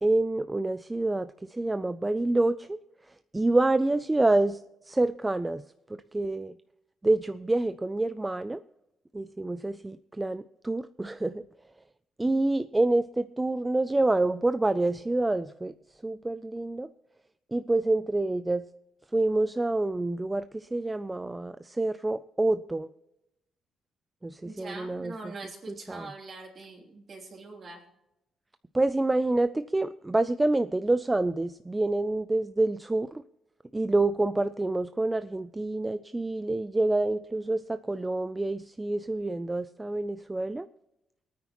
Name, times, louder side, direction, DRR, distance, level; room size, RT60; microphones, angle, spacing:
voice 1, 0.0-2.8 3.0-6.6 7.0-8.6 9.1-11.5 12.2-16.9 17.5-18.6 19.1-22.9 24.2-25.3 25.7-26.1 28.7-33.2 33.7-40.7, right 2 dB, 10° right, 12 dB, 0.3 m, -27 dB
voice 2, 24.4-27.8, right 3 dB, 35° right, 0 dB, 3.0 m, -43 dB
24.0 x 9.3 x 3.0 m, 0.89 s
cardioid pair, 160°, 0 cm